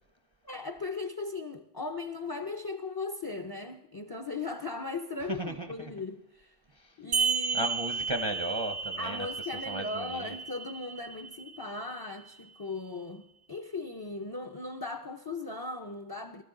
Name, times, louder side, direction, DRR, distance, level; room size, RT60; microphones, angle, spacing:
voice 1, 0.4-6.5 7.0-7.7 9.0-16.4, left 3 dB, 30° left, 0.5 m, -38 dB
voice 2, 5.3-5.9 6.7-7.0 7.5-9.3 9.7-10.4, right 1 dB, 30° right, 0.6 m, -35 dB
sound 1, 7.1-12.1, right 5 dB, 75° right, 1.2 m, -33 dB
18.5 x 13.0 x 3.8 m
omnidirectional pair, 1.2 m